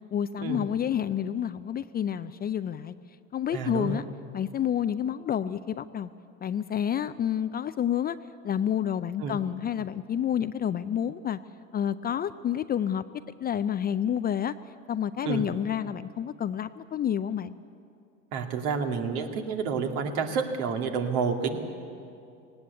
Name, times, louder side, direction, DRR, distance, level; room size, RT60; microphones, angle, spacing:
voice 1, 0.1-2.9 3.3-4.0 4.3-6.1 6.4-8.2 8.4-11.4 11.7-13.0 13.4-14.5 14.9-17.5, left 9 dB, 25° left, 13 dB, 0.5 m, -29 dB
voice 2, 3.5-4.0 9.2-9.4 15.3-15.4 18.3-21.6, right 5 dB, 65° right, 4 dB, 2.3 m, -29 dB
18.0 x 18.0 x 8.3 m, 2.5 s
hypercardioid pair, 90°, 38 cm